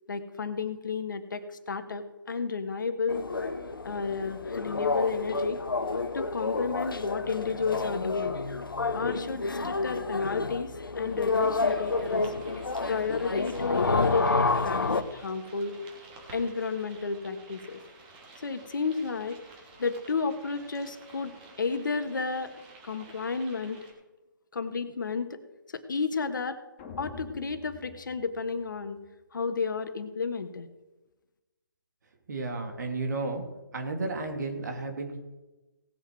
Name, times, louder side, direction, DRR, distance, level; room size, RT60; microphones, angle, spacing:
voice 1, 0.1-3.2 3.8-5.6 6.1-8.4 8.9-12.3 12.9-15.8 16.3-17.8 18.4-19.4 19.8-22.5 22.8-23.8 24.5-25.4 25.7-26.6 27.0-29.0 29.3-30.7, left 5 dB, 65° left, 9 dB, 1.5 m, -32 dB
sound 1, 3.1-15.0, left 3 dB, 85° left, 1.1 m, -29 dB
sound 2, 10.8-23.9, right 3 dB, 25° right, 3.0 m, -52 dB
sound 3, 26.8-29.1, left 4 dB, 20° left, 2.6 m, -46 dB
voice 2, 32.3-33.4 33.7-35.2, right 3 dB, 55° right, 4 dB, 2.8 m, -32 dB
18.0 x 8.1 x 4.7 m, 1.1 s
figure-of-eight pair, 145°, 11 cm